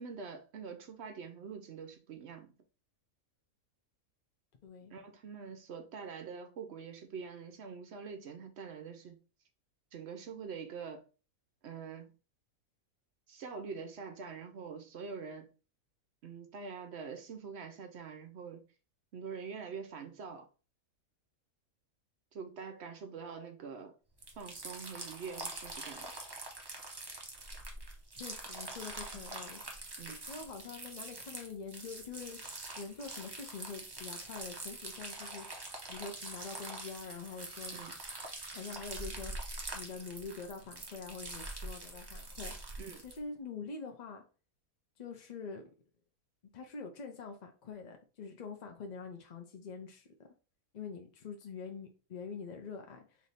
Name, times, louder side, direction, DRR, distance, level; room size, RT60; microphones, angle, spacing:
voice 1, 0.0-2.5 4.9-9.2 9.9-11.0 11.6-12.1 13.3-15.5 16.2-18.6 19.1-20.5 22.3-23.9 24.4-26.1 30.0-30.2 37.7-37.9 42.8-43.0, right 5 dB, 60° right, 0.8 m, -45 dB
voice 2, 4.6-4.9 28.1-35.5 35.9-37.8 38.5-42.5 43.0-44.2 45.0-45.6 46.5-50.1 50.7-53.2, left 5 dB, 60° left, 0.4 m, -45 dB
sound 1, 24.2-43.2, right 2 dB, 40° right, 0.3 m, -44 dB
3.2 x 2.7 x 4.0 m
omnidirectional pair, 1.5 m